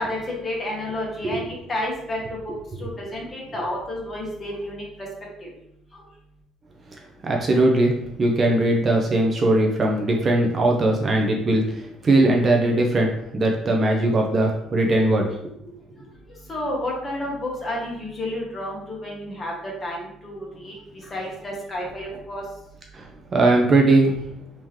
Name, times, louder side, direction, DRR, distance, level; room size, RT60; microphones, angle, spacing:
voice 1, 0.0-2.2 2.8-4.8 5.4-5.5 16.5-19.5 19.8-20.7 21.1-22.4, left 1 dB, 25° left, -3 dB, 1.2 m, -30 dB
voice 2, 7.2-15.3 15.7-15.8 22.9-23.1 23.3-24.2, right 2 dB, 30° right, 0 dB, 0.5 m, -20 dB
3.5 x 2.9 x 3.1 m, 0.77 s
cardioid pair, 125°, 0 cm